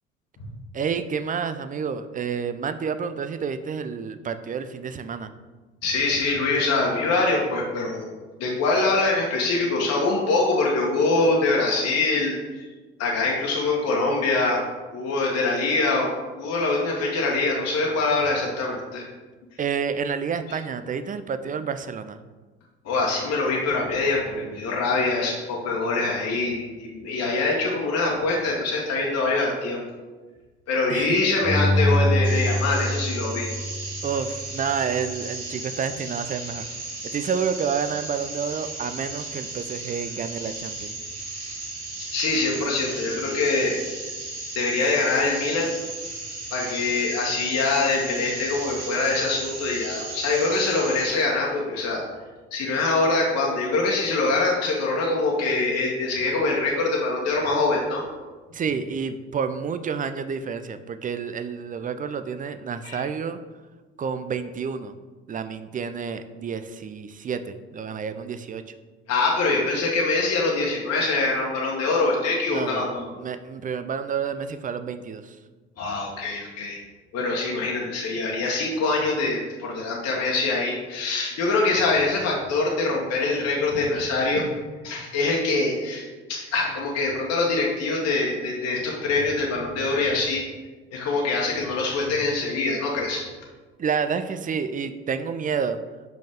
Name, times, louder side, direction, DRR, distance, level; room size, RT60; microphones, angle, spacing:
voice 1, 0.7-5.3 19.6-22.2 30.9-31.2 34.0-36.7 37.1-40.9 58.5-63.4 64.0-65.0 65.3-68.6 72.5-72.9 73.2-75.4 93.8-95.8, right 6 dB, 25° right, 10 dB, 0.4 m, -29 dB
voice 2, 5.8-8.1 8.4-12.7 13.0-14.6 14.9-16.1 16.3-19.0 22.8-29.8 30.7-33.5 42.1-43.8 44.5-45.7 46.5-52.0 52.5-58.0 62.8-63.0 69.1-73.0 75.8-76.8 77.1-84.4 84.8-90.4 90.9-93.3, left 3 dB, 50° left, -3 dB, 1.3 m, -24 dB
Bowed string instrument, 31.4-34.5 35.0-35.1, left 1 dB, 10° left, 0.8 m, -24 dB
sound 1, 32.2-51.1, right 2 dB, 90° right, 1.2 m, -35 dB
5.6 x 5.2 x 3.5 m, 1.3 s
hypercardioid pair, 60°, 33 cm